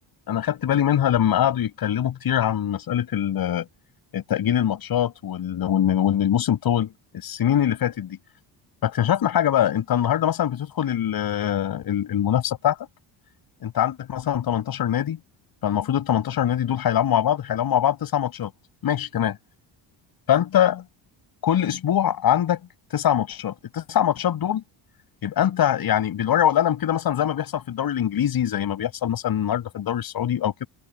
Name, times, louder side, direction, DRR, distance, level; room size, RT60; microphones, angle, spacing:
voice 1, 0.3-3.7 4.1-6.9 7.2-8.2 8.8-12.8 13.6-15.2 15.6-18.5 18.8-19.4 20.3-20.8 21.4-22.6 22.9-24.6 25.2-30.7, left 10 dB, 50° left, 6.1 m, -23 dB
cardioid pair, 180°, 46 cm